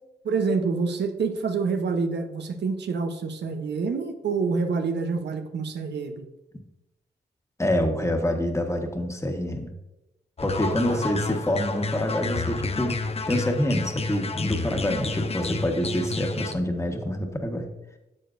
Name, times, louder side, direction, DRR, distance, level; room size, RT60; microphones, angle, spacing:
voice 1, 0.2-6.2 10.9-11.1, right 4 dB, 85° right, 7 dB, 0.8 m, -27 dB
voice 2, 7.6-9.7 10.4-13.0 13.3-17.7, equal, 15° left, 4 dB, 1.3 m, -26 dB
sound 1, 10.4-16.5, left 4 dB, 35° left, 0.7 m, -30 dB
9.7 x 6.9 x 2.6 m, 0.91 s
cardioid pair, 60°, 17 cm